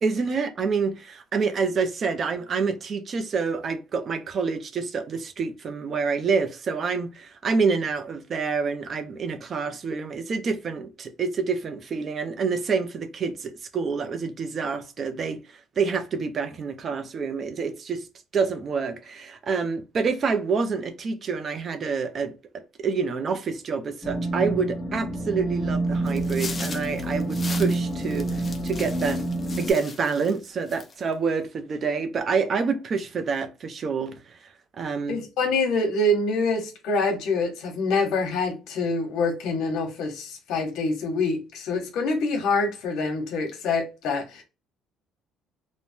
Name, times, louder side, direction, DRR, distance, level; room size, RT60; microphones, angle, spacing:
voice 1, 0.0-15.4 15.8-18.1 18.3-29.2 29.6-34.4 34.7-35.2, right 5 dB, 40° right, 0.4 m, -27 dB
sound 1, 24.0-29.7, right 2 dB, 10° left, 0.9 m, -28 dB
sound 2, 26.1-30.4 30.7-31.1, left 4 dB, 25° left, 0.5 m, -39 dB
voice 2, 35.1-44.4, left 3 dB, 70° left, 1.0 m, -25 dB
3.2 x 2.0 x 2.7 m
cardioid pair, 130°, 0 cm